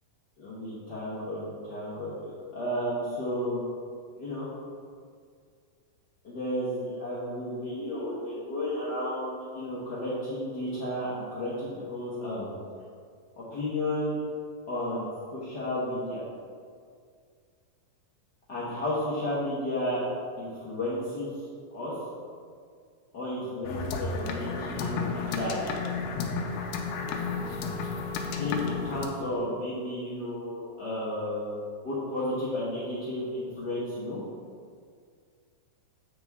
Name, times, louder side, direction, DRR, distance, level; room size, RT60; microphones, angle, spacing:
voice 1, 0.4-3.6 4.2-4.5 6.2-12.5 13.5-14.2 14.7-16.2 18.5-20.0 20.4-21.3 21.7-21.9 23.1-25.8 28.4-34.2, left 1 dB, 65° left, -9 dB, 1.0 m, -33 dB
sound 1, 23.6-29.1, left 4 dB, 85° left, 2.2 m, -32 dB
8.1 x 5.0 x 3.5 m, 2.1 s
omnidirectional pair, 3.6 m